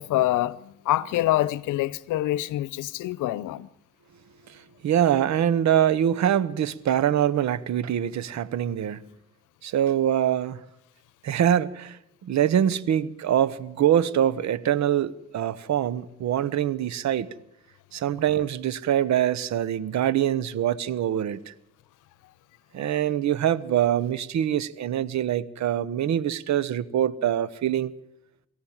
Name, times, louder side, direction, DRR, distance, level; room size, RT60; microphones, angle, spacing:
voice 1, 0.0-3.7, left 15 dB, 90° left, 0.8 m, -26 dB
voice 2, 4.8-9.0 9.6-10.6 11.2-17.3 17.9-21.5 22.7-27.9, right 10 dB, 65° right, 1.0 m, -24 dB
25.5 x 14.0 x 7.4 m
cardioid pair, 90°, 30 cm